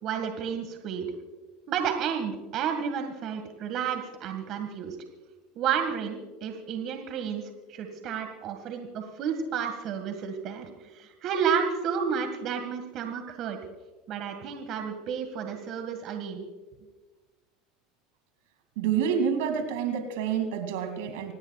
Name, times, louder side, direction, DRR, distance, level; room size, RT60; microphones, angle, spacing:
voice 1, 0.0-1.1 1.7-5.0 5.6-13.6 14.1-16.4, right 7 dB, 55° right, 6 dB, 1.9 m, -31 dB
voice 2, 18.8-21.3, right 7 dB, 75° right, 7 dB, 2.4 m, -28 dB
26.0 x 18.0 x 2.4 m, 1.2 s
hypercardioid pair, 90°, 0 cm